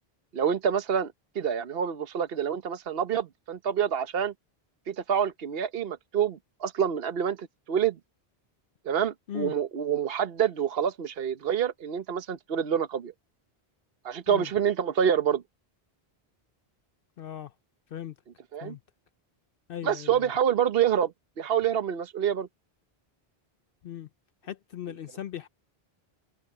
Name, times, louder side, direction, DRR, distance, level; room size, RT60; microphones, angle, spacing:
voice 1, 0.3-4.3 4.9-8.0 8.9-13.1 14.0-15.4 18.5-18.7 19.8-21.1 21.4-22.5, right 8 dB, 70° right, 1.1 m, -27 dB
voice 2, 17.2-17.5 17.9-18.1 18.6-18.8 19.7-20.3 23.8-24.1 24.4-25.5, left 10 dB, 65° left, 0.8 m, -38 dB
omnidirectional pair, 1.0 m